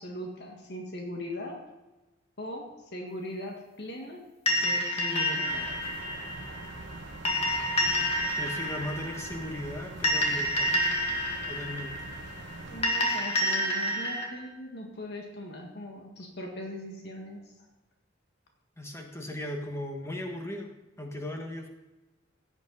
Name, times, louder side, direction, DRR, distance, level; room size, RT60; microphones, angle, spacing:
voice 1, 0.0-1.6 2.4-4.2 4.6-5.9 12.7-17.6, left 1 dB, 55° left, 2 dB, 1.8 m, -39 dB
sound 1, 4.5-14.2, equal, 30° left, 2.0 m, -29 dB
sound 2, 5.5-12.8, right 2 dB, 60° right, 1.1 m, -44 dB
voice 2, 8.4-10.7 11.5-12.1 18.8-20.7 21.0-21.7, left 1 dB, 15° left, 2 dB, 1.5 m, -37 dB
16.5 x 8.4 x 4.0 m, 1.1 s
head